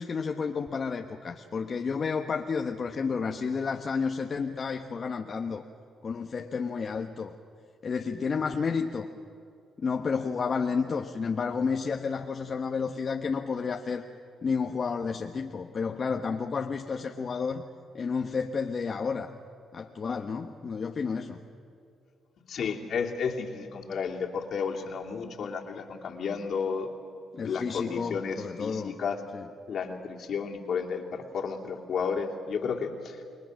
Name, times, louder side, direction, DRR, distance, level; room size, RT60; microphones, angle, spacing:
voice 1, 0.0-5.6 6.0-7.3 7.8-9.1 9.8-14.0 14.4-17.6 17.9-19.3 19.7-21.4 27.3-28.9 29.3-29.4, left 5 dB, 45° left, 3 dB, 1.2 m, -31 dB
voice 2, 22.5-26.9 27.4-29.2 29.7-33.2, left 6 dB, 60° left, 1 dB, 2.8 m, -32 dB
29.0 x 21.5 x 6.4 m, 2.4 s
cardioid pair, 90°, 0 cm